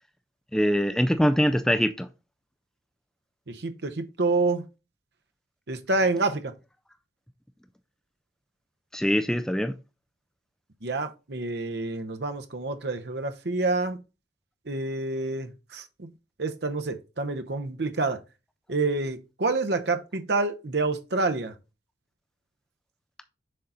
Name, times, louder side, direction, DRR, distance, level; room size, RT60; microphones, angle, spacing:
voice 1, 0.5-2.1 8.9-9.7, equal, 5° left, 0.3 m, -23 dB
voice 2, 3.5-4.6 5.7-6.5 10.8-14.0 14.7-16.1 16.4-18.2 18.7-21.5, right 3 dB, 65° right, 0.8 m, -28 dB
6.5 x 3.9 x 4.2 m
head